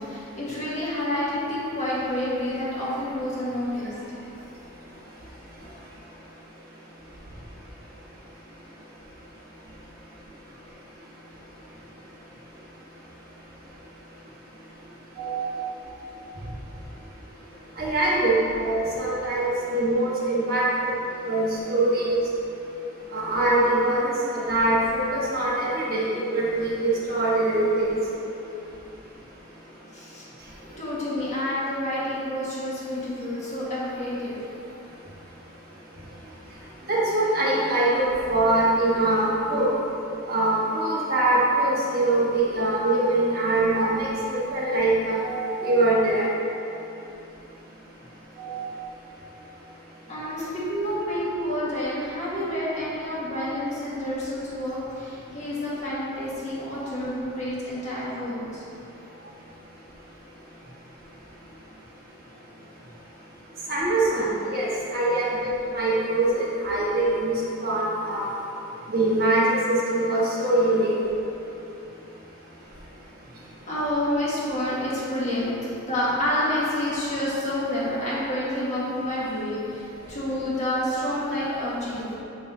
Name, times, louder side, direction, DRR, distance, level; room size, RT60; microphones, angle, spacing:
voice 1, 0.0-3.9 29.9-30.2 30.8-34.4 50.1-58.6 60.6-60.7 73.7-82.1, left 1 dB, 35° left, -8 dB, 1.5 m, -29 dB
voice 2, 15.2-15.7 17.8-22.2 23.1-28.0 36.9-39.7 40.3-46.3 48.4-48.8 63.7-68.3 68.9-70.9, right 2 dB, 45° right, -7 dB, 1.3 m, -23 dB
8.1 x 5.8 x 2.7 m, 2.8 s
head